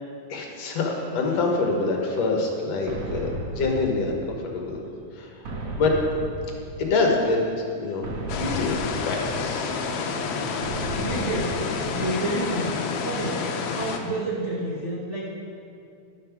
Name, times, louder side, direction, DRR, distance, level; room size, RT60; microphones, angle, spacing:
voice 1, 0.3-4.8 5.2-5.3 5.8-5.9 6.8-8.0 8.4-9.8, left 3 dB, 65° left, 0 dB, 2.2 m, -25 dB
sound 1, 2.9-4.6 5.4-7.2 8.0-9.8 10.6-12.4, right 1 dB, 60° right, 2.1 m, -35 dB
sound 2, 8.3-14.0, left 5 dB, 80° left, 2.2 m, -29 dB
voice 2, 11.0-11.6 11.9-12.7 13.0-15.3, right 2 dB, 85° right, -6 dB, 0.6 m, -29 dB
11.0 x 7.6 x 5.9 m, 2.5 s
omnidirectional pair, 3.4 m